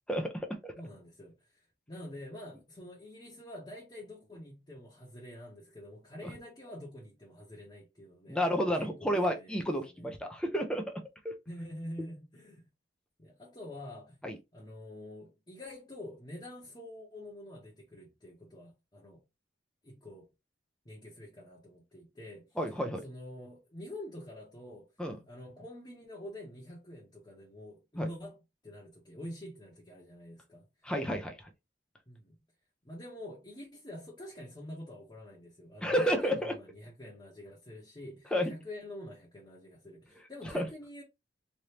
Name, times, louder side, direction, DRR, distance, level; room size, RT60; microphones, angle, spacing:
voice 1, 0.1-0.7 6.2-6.3 8.3-10.9 11.2-11.4 14.2-14.4 22.6-23.0 25.0-25.2 28.0-28.1 30.8-31.5 35.8-36.6 38.3-38.5 40.4-40.7, equal, 5° left, 0.5 m, -31 dB
voice 2, 0.8-1.3 1.9-8.4 8.8-10.1 11.5-12.6 13.2-14.2 14.5-19.2 19.8-20.3 20.8-22.5 23.0-24.9 25.3-28.4 28.6-30.7 32.1-32.4 32.8-41.0, left 1 dB, 25° left, 0.9 m, -46 dB
3.2 x 2.6 x 2.9 m
head